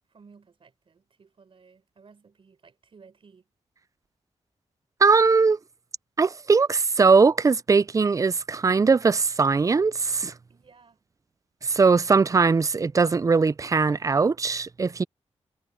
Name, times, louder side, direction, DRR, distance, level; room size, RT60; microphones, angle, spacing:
voice 1, 0.1-3.5 10.5-11.0, right 5 dB, 50° right, 4.4 m, -55 dB
voice 2, 5.0-5.6 6.2-10.3 11.6-15.0, right 4 dB, 30° right, 0.4 m, -20 dB
wide cardioid pair, 105°, 12 cm